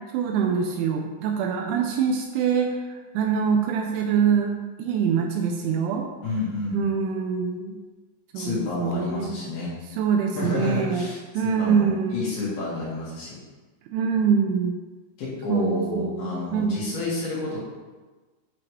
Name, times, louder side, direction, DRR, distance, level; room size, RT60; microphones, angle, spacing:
voice 1, 0.1-2.8 3.1-6.1 6.7-7.8 8.3-9.3 9.9-11.1 11.3-12.2 13.9-14.7 15.5-16.8, right 6 dB, 85° right, 3 dB, 2.8 m, -24 dB
voice 2, 6.2-6.8 8.3-9.7 10.4-13.4 15.2-17.6, left 3 dB, 60° left, -7 dB, 3.1 m, -30 dB
8.7 x 6.4 x 3.1 m, 1.3 s
omnidirectional pair, 5.7 m